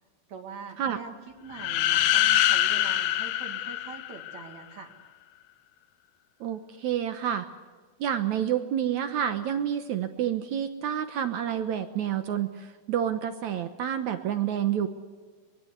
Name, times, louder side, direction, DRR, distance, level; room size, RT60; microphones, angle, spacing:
voice 1, 0.3-1.1 1.4-4.9, right 5 dB, 50° right, 4 dB, 3.1 m, -43 dB
sound 1, 1.5-4.5, left 13 dB, 75° left, 2.3 m, -24 dB
voice 2, 6.4-7.5 8.0-14.9, right 9 dB, 75° right, 8 dB, 1.8 m, -29 dB
24.5 x 21.0 x 8.1 m, 1.5 s
omnidirectional pair, 4.8 m